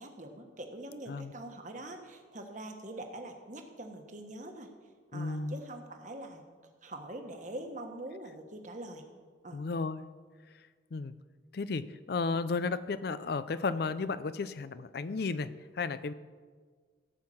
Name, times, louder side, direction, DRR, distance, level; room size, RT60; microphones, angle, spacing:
voice 1, 0.0-4.7 5.1-6.4 6.8-9.0 9.4-9.6, right 1 dB, 40° right, 4 dB, 1.3 m, -44 dB
voice 2, 5.1-5.6 9.5-10.1 10.9-11.1 11.5-16.1, left 4 dB, 55° left, 14 dB, 0.4 m, -33 dB
16.0 x 5.7 x 7.7 m, 1.5 s
head